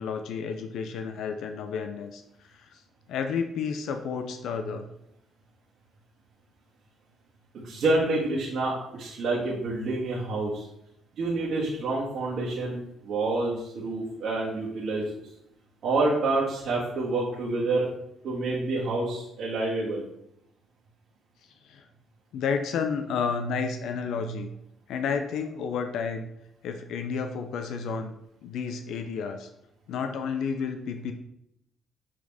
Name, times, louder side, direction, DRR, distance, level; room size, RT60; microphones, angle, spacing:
voice 1, 0.0-2.2 2.5-2.7 3.1-4.9 21.7-21.8 22.3-24.5 24.9-26.3 26.6-28.1 28.4-29.5 29.9-31.1, left 5 dB, 80° left, 6 dB, 0.6 m, -31 dB
voice 2, 7.6-10.6 11.2-15.2 15.8-17.9 18.2-20.0, right 2 dB, 65° right, -7 dB, 1.7 m, -28 dB
7.6 x 4.2 x 3.5 m, 0.78 s
cardioid pair, 90°, 0 cm